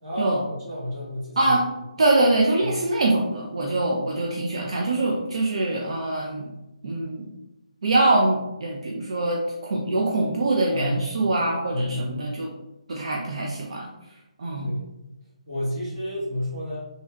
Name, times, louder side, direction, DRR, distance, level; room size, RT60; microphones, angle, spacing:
voice 1, 0.0-1.5 2.6-2.7 10.7-11.1 11.7-12.2 14.6-14.9 15.5-16.8, left 1 dB, 20° right, -10 dB, 1.4 m, -31 dB
voice 2, 2.0-6.5 6.8-7.3 7.8-12.5 12.9-13.9 14.4-14.7, right 2 dB, 55° right, -1 dB, 0.4 m, -23 dB
3.3 x 2.6 x 2.3 m, 0.96 s
hypercardioid pair, 170°, 4 cm